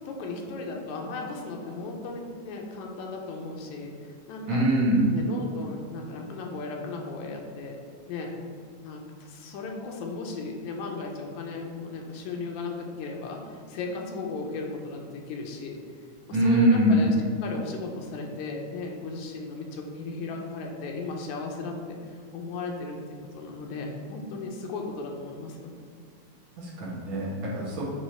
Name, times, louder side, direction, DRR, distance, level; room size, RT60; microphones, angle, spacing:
voice 1, 0.1-4.7 5.1-7.8 8.1-8.3 8.8-15.8 16.3-22.0 22.3-25.7, left 3 dB, 80° left, 1 dB, 2.2 m, -36 dB
voice 2, 4.5-5.1 16.3-17.0 26.6-27.8, right 1 dB, 65° right, -7 dB, 2.8 m, -23 dB
8.8 x 3.4 x 4.4 m, 2.2 s
omnidirectional pair, 3.3 m